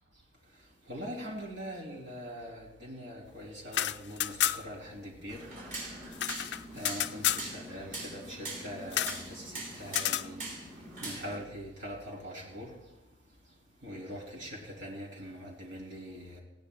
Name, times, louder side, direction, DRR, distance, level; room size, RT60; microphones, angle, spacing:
voice 1, 0.9-5.4 6.7-10.4 11.0-12.7 13.8-16.4, equal, 85° right, -1 dB, 3.5 m, -42 dB
sound 1, 3.6-4.8 5.1-5.2 5.5-7.5 8.9-9.2 9.9-10.3, left 12 dB, 65° left, 0.4 m, -31 dB
sound 2, 5.3-11.4, right 2 dB, 50° right, 4.6 m, -42 dB
19.5 x 16.0 x 2.4 m, 0.99 s
head